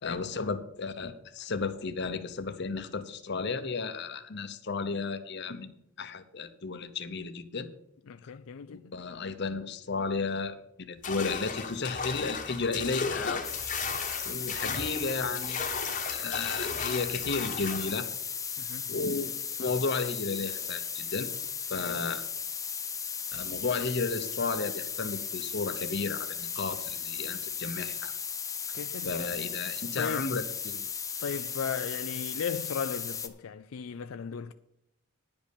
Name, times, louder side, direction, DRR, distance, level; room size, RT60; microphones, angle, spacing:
voice 1, 0.0-7.7 8.2-8.3 8.7-13.5 14.2-15.7 16.1-18.1 18.9-19.3 19.6-21.3 21.7-22.2 23.3-28.1 29.0-30.9, left 4 dB, 55° left, 0.8 m, -33 dB
voice 2, 8.1-8.9 18.6-18.9 21.8-22.0 28.7-29.1 30.0-30.4 31.2-34.5, left 6 dB, 85° left, 0.4 m, -36 dB
sound 1, 11.0-17.9, left 5 dB, 40° left, 1.2 m, -35 dB
sound 2, 13.4-33.3, left 7 dB, 15° left, 0.6 m, -36 dB
10.5 x 5.3 x 8.3 m
head